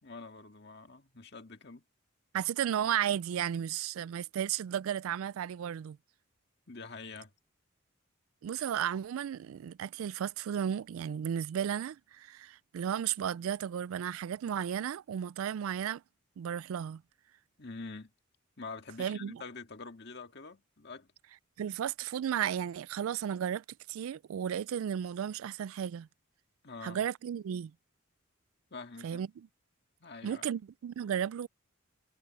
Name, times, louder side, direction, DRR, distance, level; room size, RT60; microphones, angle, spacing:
voice 1, 0.0-1.8 6.7-7.3 17.6-18.1 18.6-21.1 26.6-27.0 28.7-29.2 30.0-30.6, left 4 dB, 50° left, 1.9 m, -46 dB
voice 2, 2.3-6.0 8.4-16.0 16.4-17.0 19.0-19.4 21.6-26.1 26.8-27.7 29.0-29.5 30.2-31.5, right 9 dB, 85° right, 0.3 m, -34 dB
head